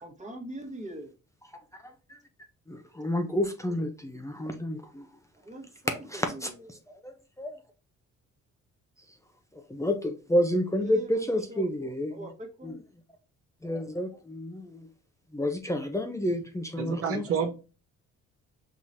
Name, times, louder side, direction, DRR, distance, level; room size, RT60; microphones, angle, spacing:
voice 1, 0.0-1.1 5.3-6.7 10.8-12.8, right 1 dB, 25° right, 1.5 m, -43 dB
voice 2, 2.7-5.0 6.1-6.5 7.0-7.1 7.4-7.5 9.7-12.1 12.6-12.7 13.6-14.9 15.3-17.2, equal, 10° left, 0.7 m, -29 dB
voice 3, 16.8-17.5, right 7 dB, 50° right, 0.9 m, -29 dB
5.7 x 3.0 x 2.7 m
cardioid pair, 90°, 30 cm